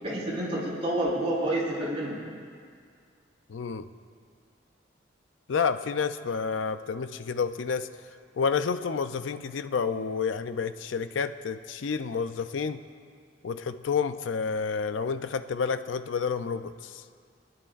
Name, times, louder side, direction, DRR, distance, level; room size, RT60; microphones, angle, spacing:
voice 1, 0.0-2.2, right 1 dB, 35° right, -7 dB, 3.8 m, -29 dB
voice 2, 3.5-3.9 5.5-7.9 8.4-12.8 13.4-17.0, left 5 dB, 85° left, 11 dB, 0.5 m, -29 dB
23.5 x 11.0 x 2.5 m, 2.1 s
head